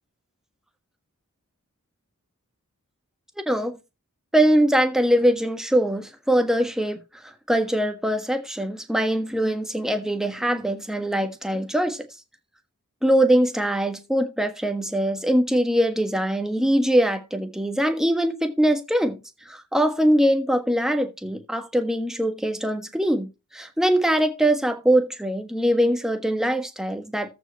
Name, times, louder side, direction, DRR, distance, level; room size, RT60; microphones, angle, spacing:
voice 1, 3.5-3.8 4.3-7.0 7.5-12.0 13.0-19.2 19.5-27.3, right 1 dB, ahead, 1.3 m, -22 dB
13.5 x 5.2 x 4.5 m
head